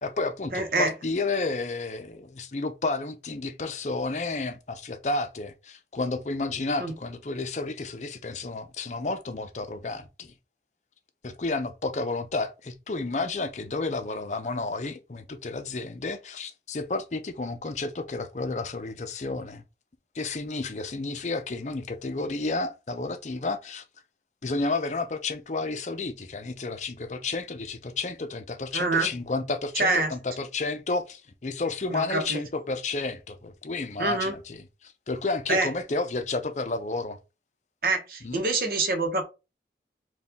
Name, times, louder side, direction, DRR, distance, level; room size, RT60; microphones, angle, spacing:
voice 1, 0.0-10.3 11.2-19.6 20.1-23.8 24.4-37.2 38.2-38.4, left 3 dB, 40° left, 0.6 m, -31 dB
voice 2, 0.5-0.9 6.8-6.9 28.7-29.1 29.7-30.1 31.9-32.4 34.0-34.3 35.5-35.7 37.8-39.2, right 3 dB, 55° right, 1.0 m, -26 dB
4.2 x 2.4 x 3.6 m
head